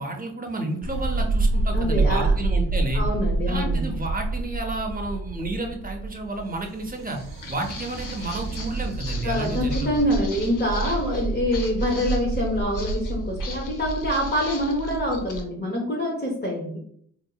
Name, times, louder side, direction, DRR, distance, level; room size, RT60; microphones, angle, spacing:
voice 1, 0.0-3.0 3.5-7.2 7.5-10.1, right 2 dB, 25° right, 2 dB, 0.6 m, -31 dB
sound 1, 0.8-15.4, right 3 dB, 90° right, 0.5 m, -28 dB
voice 2, 1.7-2.3 2.9-3.8 9.2-16.8, left 1 dB, 30° left, -2 dB, 0.7 m, -25 dB
Walk footsteps, 7.1-15.4, left 4 dB, 75° left, 0.6 m, -41 dB
3.9 x 2.7 x 2.2 m, 0.64 s
wide cardioid pair, 80°, 32 cm